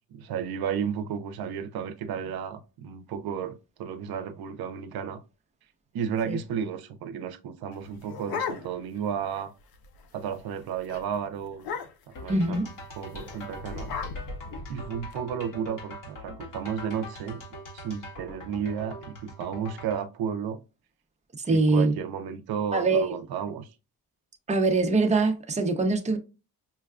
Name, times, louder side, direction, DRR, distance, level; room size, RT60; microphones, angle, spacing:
voice 1, 0.1-5.2 5.9-9.5 10.1-11.7 12.2-12.6 13.0-13.9 14.7-17.4 17.7-20.6 21.4-23.7, right 8 dB, 80° right, 0.6 m, -33 dB
sound 1, 7.7-9.0 9.4-9.5 9.7-10.1 10.4-10.6 10.9-11.0 11.6-12.2 13.1-15.1, left 5 dB, 75° left, 0.8 m, -36 dB
sound 2, 12.2-20.0, equal, 55° left, 1.7 m, -43 dB
voice 2, 12.3-12.7 21.5-21.9 22.7-23.1 24.5-26.2, right 3 dB, 20° right, 0.7 m, -23 dB
5.5 x 2.2 x 2.3 m
cardioid pair, 110°, 37 cm